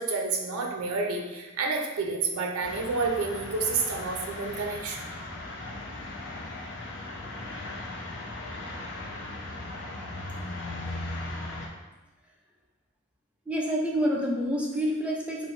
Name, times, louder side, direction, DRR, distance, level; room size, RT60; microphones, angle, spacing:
voice 1, 0.0-5.0, right 4 dB, 85° right, 1 dB, 0.5 m, -29 dB
sound 1, 2.6-11.7, left 2 dB, 55° left, 0.5 m, -38 dB
voice 2, 13.5-15.5, equal, 5° right, -2 dB, 0.3 m, -28 dB
2.9 x 2.0 x 3.0 m, 1.1 s
head